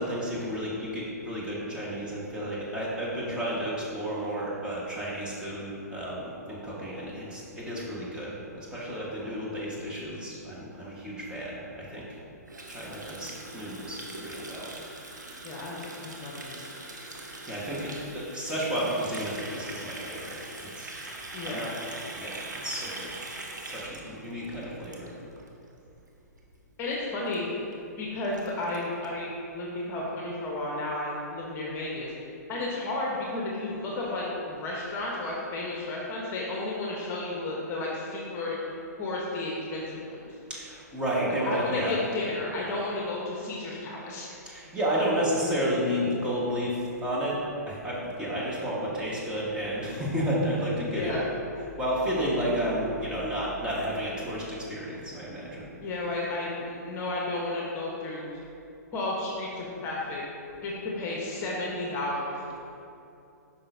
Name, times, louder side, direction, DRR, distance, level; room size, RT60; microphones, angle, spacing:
voice 1, 0.0-12.1 12.7-14.7 17.2-20.4 20.6-20.9 21.5-21.7 22.1-23.1 23.6-25.1 40.5-42.0 44.4-51.2 51.8-55.7, equal, 10° right, -7 dB, 1.6 m, -31 dB
Water tap faucet, 12.5-25.5 25.8-26.0 26.3-26.7 26.9-27.0 27.3-27.4 27.7-27.8 28.0-29.1, right 2 dB, 90° right, 1.0 m, -42 dB
voice 2, 15.4-16.8 17.7-17.9 21.3-21.7 26.8-27.5 27.8-32.1 32.5-38.7 39.0-40.3 41.4-44.3 50.9-51.2 55.8-58.3 58.9-60.2 60.6-62.4, left 2 dB, 25° left, -4 dB, 1.2 m, -33 dB
9.4 x 5.7 x 2.8 m, 2.7 s
hypercardioid pair, 120°, 9 cm